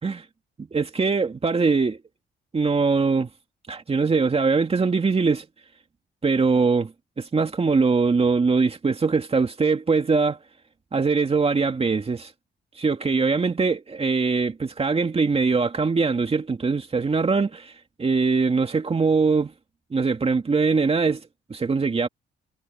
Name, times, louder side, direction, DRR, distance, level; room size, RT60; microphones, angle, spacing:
voice 1, 0.6-2.0 2.5-3.3 3.7-5.5 6.2-6.9 7.2-10.4 10.9-12.3 12.8-17.7 18.0-19.5 19.9-21.2 21.5-22.1, right 4 dB, 30° right, 2.3 m, -22 dB
cardioid pair, 90°, 20 cm